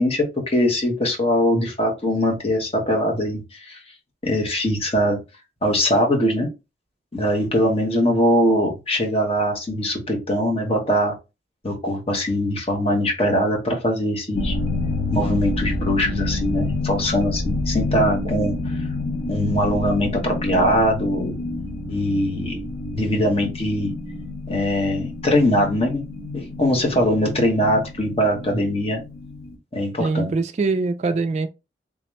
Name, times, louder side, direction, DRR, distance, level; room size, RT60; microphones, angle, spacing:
voice 1, 0.0-3.8 4.2-5.2 5.6-6.5 7.1-11.1 11.6-14.5 15.1-18.9 19.3-21.3 21.9-22.6 22.9-23.9 24.5-26.0 26.3-29.0 29.7-30.3, equal, 35° left, 1.1 m, -21 dB
sound 1, 14.3-29.5, left 2 dB, 60° left, 0.8 m, -28 dB
voice 2, 30.0-31.5, right 3 dB, 40° right, 0.3 m, -23 dB
3.6 x 2.9 x 3.1 m
head